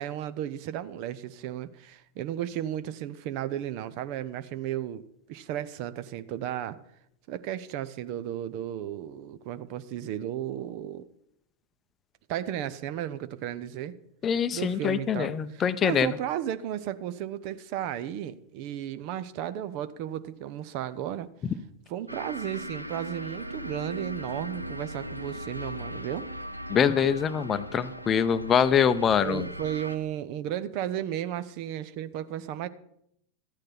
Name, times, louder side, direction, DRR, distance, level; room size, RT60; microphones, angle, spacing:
voice 1, 0.0-5.0 5.3-6.8 7.3-11.0 12.3-13.9 14.5-21.3 21.9-26.3 29.2-32.7, right 11 dB, 45° right, 13 dB, 0.7 m, -34 dB
voice 2, 14.2-16.1 26.7-29.5, left 7 dB, 25° left, 13 dB, 0.7 m, -24 dB
sound 1, 22.1-30.0, equal, 90° right, 0.6 m, -38 dB
13.5 x 9.0 x 5.7 m, 0.75 s
figure-of-eight pair, 90°, 0 cm